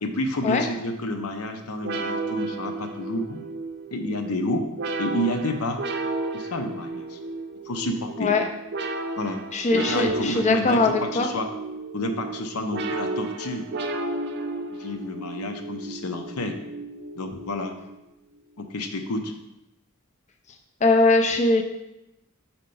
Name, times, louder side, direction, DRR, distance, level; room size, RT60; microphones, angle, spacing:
voice 1, 0.0-3.4 3.9-4.7 5.0-5.8 6.3-7.2 7.6-8.3 9.2-9.4 9.7-11.5 11.9-13.7 14.7-16.6 17.2-17.8 18.6-19.3, left 1 dB, 85° left, 5 dB, 0.7 m, -29 dB
sound 1, 1.8-18.0, right 2 dB, 50° right, 0.5 m, -33 dB
voice 2, 9.5-11.3 20.8-21.6, left 3 dB, 30° left, 5 dB, 0.4 m, -21 dB
4.4 x 4.3 x 5.4 m, 0.91 s
head